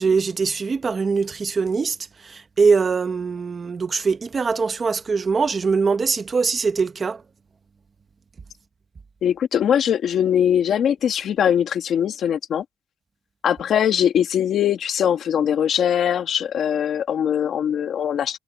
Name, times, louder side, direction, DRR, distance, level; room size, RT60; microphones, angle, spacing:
voice 1, 0.0-2.0 2.2-7.2, right 5 dB, 30° right, 1.1 m, -22 dB
voice 2, 9.2-12.6 13.4-18.4, left 9 dB, 65° left, 2.0 m, -21 dB
wide cardioid pair, 165°, 0 cm